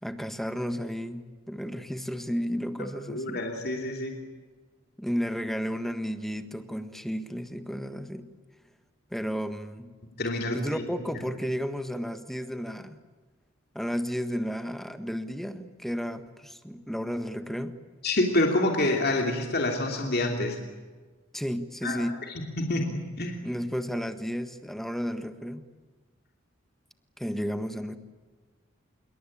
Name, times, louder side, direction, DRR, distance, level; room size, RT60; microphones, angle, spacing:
voice 1, 0.0-3.4 5.0-8.3 9.1-9.9 10.5-13.0 13.7-17.8 21.3-22.2 23.4-25.7 27.2-28.0, equal, ahead, 9 dB, 1.5 m, -33 dB
voice 2, 3.1-4.2 10.2-10.6 18.0-20.6 21.8-22.0 22.6-23.4, left 2 dB, 55° left, 2 dB, 2.9 m, -27 dB
26.5 x 23.0 x 8.7 m, 1.4 s
head